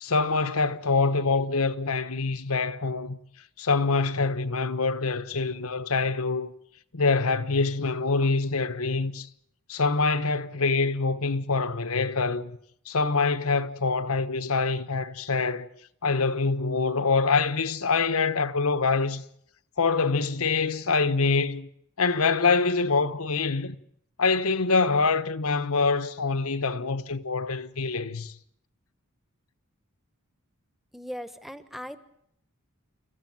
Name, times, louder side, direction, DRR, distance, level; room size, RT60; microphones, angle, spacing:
voice 1, 0.0-3.2 3.6-6.5 6.9-9.3 9.7-12.6 12.9-15.7 16.0-19.2 19.8-21.7 22.0-23.8 24.2-28.3, left 4 dB, 70° left, 1.1 m, -25 dB
voice 2, 30.9-32.1, equal, ahead, 1.3 m, -39 dB
29.5 x 14.5 x 9.5 m
head